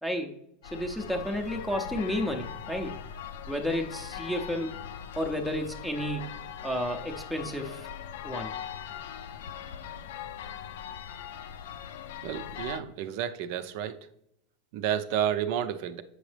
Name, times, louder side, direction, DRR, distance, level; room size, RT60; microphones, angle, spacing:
voice 1, 0.0-3.0 3.5-4.7 5.2-7.9 8.2-8.5, equal, ahead, 0.6 m, -32 dB
sound 1, 0.6-12.8, left 9 dB, 80° left, 0.5 m, -40 dB
voice 2, 12.2-14.0 14.7-16.0, right 10 dB, 55° right, 0.5 m, -31 dB
7.9 x 6.2 x 3.3 m
supercardioid pair, 150°, 0 cm